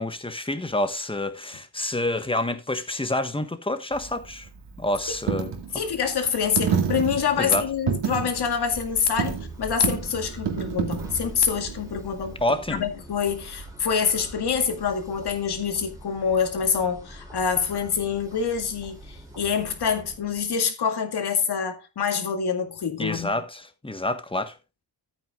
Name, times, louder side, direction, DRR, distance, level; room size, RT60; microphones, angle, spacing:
voice 1, 0.0-4.5 4.8-5.5 7.4-7.7 12.4-12.9 23.0-24.6, left 1 dB, 15° left, 1.3 m, -28 dB
Coin (dropping), 3.9-12.5, right 7 dB, 80° right, 2.1 m, -30 dB
voice 2, 5.7-12.4 12.8-23.3, left 6 dB, 65° left, 2.3 m, -26 dB
sound 1, 8.7-20.6, right 1 dB, 10° right, 2.9 m, -43 dB
14.0 x 8.7 x 2.4 m
cardioid pair, 95°, 41 cm